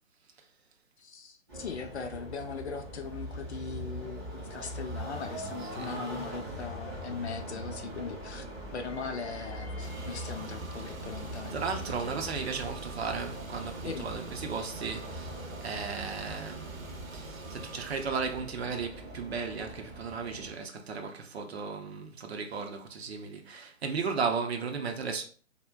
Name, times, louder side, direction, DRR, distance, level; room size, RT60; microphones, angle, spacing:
voice 1, 1.0-8.5 8.7-11.6 12.0-12.2 13.8-14.1, left 5 dB, 55° left, 0.5 m, -40 dB
sound 1, 1.5-20.5, right 1 dB, 15° right, 0.6 m, -41 dB
Car / Engine, 9.8-18.1, right 4 dB, 85° right, 0.8 m, -46 dB
voice 2, 11.5-15.3 15.6-16.9 17.1-25.2, right 5 dB, 50° right, 0.6 m, -35 dB
2.4 x 2.1 x 3.3 m
figure-of-eight pair, 145°, 40 cm